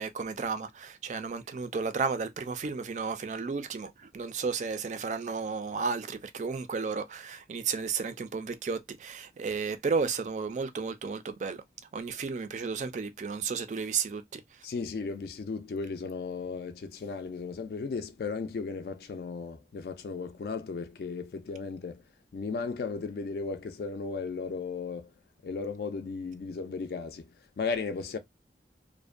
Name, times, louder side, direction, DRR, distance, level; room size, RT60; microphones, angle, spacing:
voice 1, 0.0-11.6 11.9-14.4, right 5 dB, 40° right, 0.3 m, -33 dB
voice 2, 14.6-22.0 22.3-25.1 25.4-28.2, left 4 dB, 60° left, 0.3 m, -35 dB
2.6 x 2.1 x 2.4 m
head